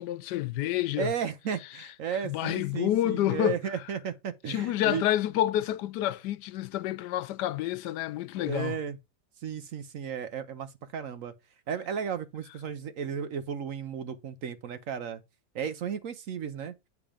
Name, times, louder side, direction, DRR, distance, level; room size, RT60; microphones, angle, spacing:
voice 1, 0.0-1.1 2.2-3.6 4.5-8.8, left 13 dB, 85° left, 1.2 m, -28 dB
voice 2, 1.0-5.0 8.4-9.0 9.4-11.3 11.7-15.2 15.5-16.7, right 7 dB, 60° right, 0.9 m, -34 dB
8.8 x 3.5 x 5.0 m
omnidirectional pair, 1.8 m